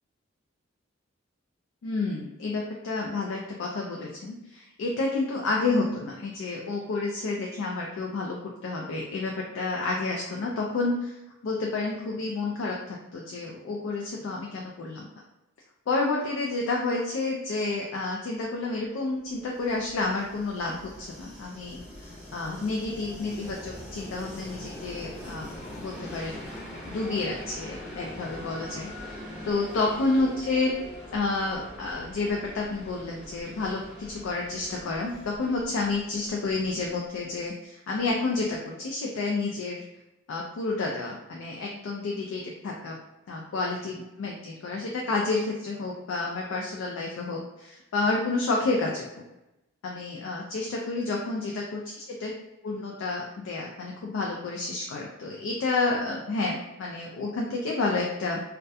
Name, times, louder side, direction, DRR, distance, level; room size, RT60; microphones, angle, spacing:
voice 1, 1.8-15.1 15.9-21.8 22.3-26.4 26.9-30.7 31.1-39.8 40.3-43.0 43.3-49.1 49.8-52.3 52.6-58.4, left 3 dB, 75° left, -1 dB, 0.3 m, -30 dB
Train, 19.3-37.0, left 1 dB, 5° right, 0.6 m, -43 dB
2.3 x 2.2 x 2.6 m, 0.97 s
head